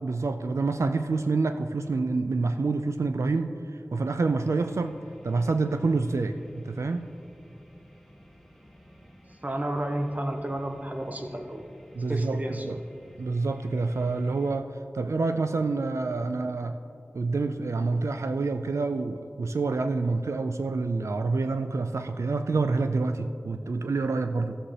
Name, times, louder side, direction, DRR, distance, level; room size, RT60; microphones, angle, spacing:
voice 1, 0.0-5.0 5.2-7.1 11.9-12.8 13.2-16.8 17.1-24.6, right 3 dB, 85° right, 7 dB, 0.3 m, -27 dB
sound 1, 4.4-14.6, equal, ahead, 0.9 m, -54 dB
voice 2, 9.4-11.6 12.1-12.7, right 1 dB, 35° right, 3 dB, 1.0 m, -31 dB
15.0 x 7.3 x 3.3 m, 2.6 s
wide cardioid pair, 60°, 5 cm